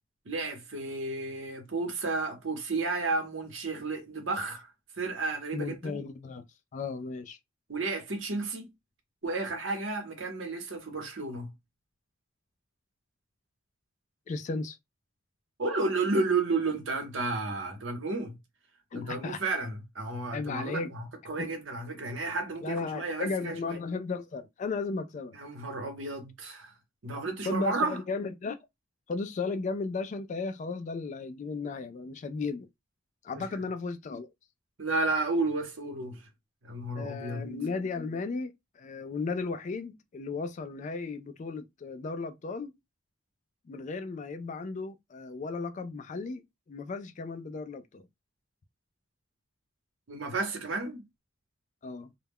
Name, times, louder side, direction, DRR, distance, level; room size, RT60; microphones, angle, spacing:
voice 1, 0.3-4.7 5.0-6.0 7.7-8.7 9.2-11.5 15.6-18.4 18.9-23.8 25.3-26.7 27.0-28.0 33.3-33.6 34.8-36.2 36.6-37.4 50.1-51.0, right 3 dB, 70° right, 0.9 m, -32 dB
voice 2, 5.5-6.4 6.7-7.4 14.3-14.8 18.9-19.4 20.3-20.9 22.6-25.4 27.4-28.6 29.1-32.7 33.2-34.3 37.0-42.7 43.7-48.0 51.8-52.1, left 4 dB, 40° left, 0.3 m, -35 dB
2.2 x 2.1 x 3.4 m
head